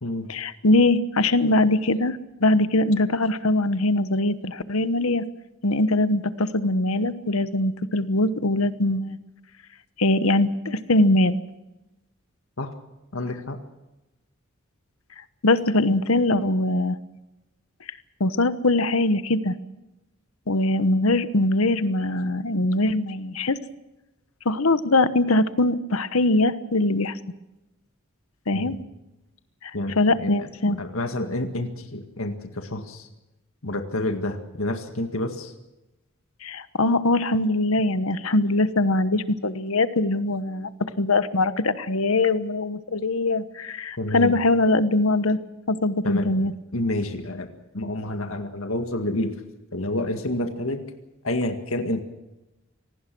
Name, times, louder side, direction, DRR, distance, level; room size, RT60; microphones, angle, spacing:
voice 1, 0.3-5.2 5.6-9.2 10.0-11.4 15.4-17.0 18.2-19.5 20.5-23.6 24.4-27.2 28.5-28.8 29.6-29.7 30.0-30.8 36.4-40.7 41.0-45.4 45.7-46.5, left 2 dB, 90° left, 12 dB, 1.2 m, -22 dB
voice 2, 13.1-13.6 28.5-28.8 29.7-33.1 33.6-35.5 44.0-44.4 46.0-46.3 46.7-47.5 47.7-49.3 49.7-50.9 51.2-52.0, left 1 dB, 75° left, 6 dB, 1.9 m, -28 dB
26.5 x 19.0 x 6.2 m, 0.98 s
head